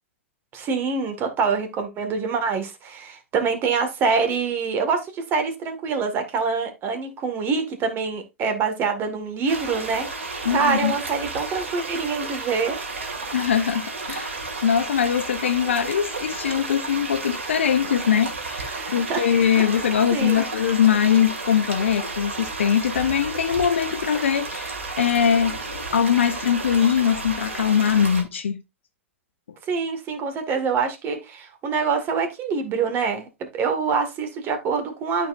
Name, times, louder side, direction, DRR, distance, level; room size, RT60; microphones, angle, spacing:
voice 1, 0.5-12.8 18.7-19.2 19.5-19.7 20.1-20.5 29.7-33.3 33.5-35.3, right 5 dB, 30° right, 1.8 m, -25 dB
sound 1, 9.5-28.2, right 3 dB, 75° right, 2.0 m, -32 dB
voice 2, 10.4-10.9 13.3-14.3 14.6-28.6, left 8 dB, 70° left, 0.7 m, -22 dB
12.5 x 4.4 x 2.5 m
figure-of-eight pair, 95°, 7 cm